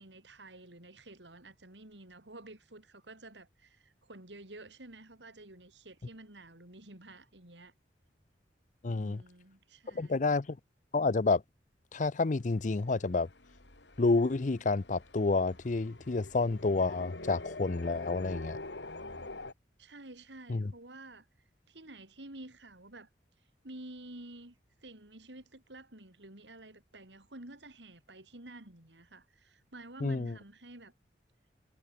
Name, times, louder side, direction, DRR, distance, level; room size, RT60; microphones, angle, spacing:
voice 1, 0.0-7.7 8.9-10.2 19.8-21.3 21.7-23.1 23.6-24.6 24.8-30.9, right 2 dB, 90° right, 4.4 m, -50 dB
voice 2, 8.8-9.2 9.9-10.6 10.9-11.4 11.9-13.3 14.0-18.6 20.5-20.7 30.0-30.4, left 3 dB, 45° left, 0.6 m, -29 dB
sound 1, 12.4-19.5, left 2 dB, 85° left, 4.4 m, -46 dB
head